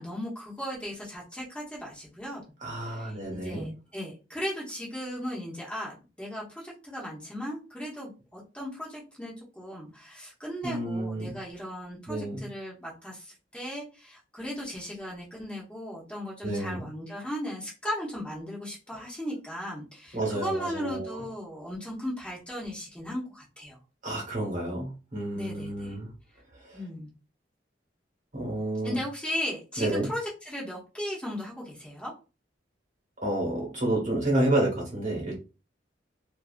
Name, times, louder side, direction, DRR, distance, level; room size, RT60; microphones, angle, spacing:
voice 1, 0.0-2.4 2.8-23.8 25.3-25.9 26.7-27.1 28.8-32.1, equal, 5° left, -4 dB, 0.8 m, -37 dB
voice 2, 2.6-3.7 10.6-11.4 12.1-12.4 16.4-16.9 20.1-21.2 24.0-26.1 26.6-26.8 28.3-29.0 29.8-30.1 33.2-35.4, right 1 dB, 45° right, -2 dB, 1.1 m, -30 dB
2.6 x 2.4 x 2.4 m, 0.31 s
head